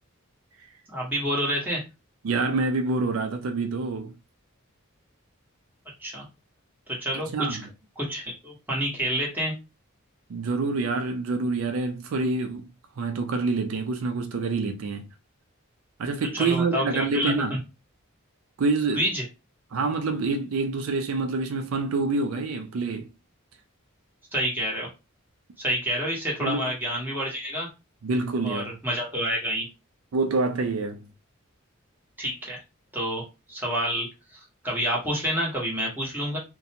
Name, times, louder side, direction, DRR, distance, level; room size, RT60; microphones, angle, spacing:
voice 1, 0.9-1.8 6.0-6.2 7.0-7.6 8.0-9.5 16.3-17.6 18.9-19.2 24.3-24.9 25.6-27.7 28.4-29.7 32.2-32.6 32.9-36.4, equal, 10° right, 1.1 m, -28 dB
voice 2, 2.2-4.2 7.1-7.6 10.3-12.7 13.0-15.1 16.0-17.6 18.6-19.1 19.7-23.1 26.4-26.7 28.0-28.7 30.1-31.1, right 3 dB, 80° right, 0.4 m, -27 dB
2.5 x 2.1 x 2.8 m
head